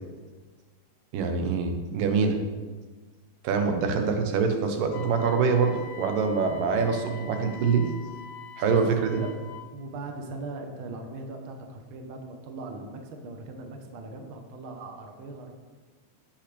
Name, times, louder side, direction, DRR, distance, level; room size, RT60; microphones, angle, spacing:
voice 1, 1.1-2.4 3.4-7.9 8.6-9.1, right 5 dB, 85° right, 5 dB, 2.6 m, -25 dB
Wind instrument woodwind instrument, 4.9-9.7, left 4 dB, 75° left, 1.7 m, -44 dB
voice 2, 8.7-9.4 9.7-15.5, right 2 dB, 65° right, 3 dB, 1.3 m, -40 dB
16.5 x 5.9 x 3.4 m, 1.4 s
omnidirectional pair, 3.8 m